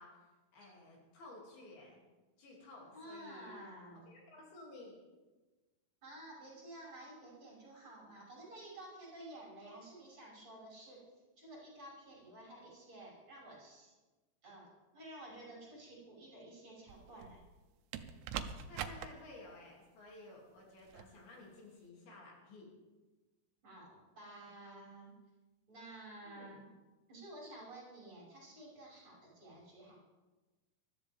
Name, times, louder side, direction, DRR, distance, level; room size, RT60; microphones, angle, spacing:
voice 1, 0.0-2.0 2.4-3.6 3.9-5.0 18.7-22.7 26.2-26.6, left 2 dB, 65° left, -3 dB, 4.6 m, -54 dB
voice 2, 2.9-4.0 6.0-11.0 11.4-13.9 14.4-17.4 23.6-25.1 25.7-26.6 27.1-30.0, right 1 dB, 30° right, -6 dB, 5.9 m, -52 dB
sound 1, 16.9-17.5 17.9-19.1 20.9-21.1, right 8 dB, 90° right, 2.9 m, -43 dB
20.5 x 13.0 x 3.5 m, 1.2 s
omnidirectional pair, 4.7 m